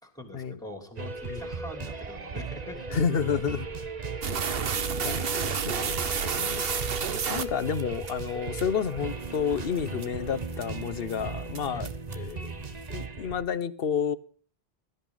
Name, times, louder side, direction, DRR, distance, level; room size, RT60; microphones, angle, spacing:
voice 1, 0.0-2.8 11.7-11.9, left 1 dB, 5° left, 3.0 m, -43 dB
sound 1, 1.0-13.5, right 3 dB, 40° right, 1.2 m, -36 dB
voice 2, 2.9-3.6 5.0-6.9 7.3-11.9 12.1-12.5 12.9-14.2, left 7 dB, 65° left, 1.1 m, -30 dB
sound 2, 4.2-8.1 8.6-8.7 9.2-9.4 9.8-10.1 10.5-10.8 11.1-11.2 11.6-12.3, right 6 dB, 65° right, 1.2 m, -30 dB
16.5 x 13.5 x 4.0 m
omnidirectional pair, 1.1 m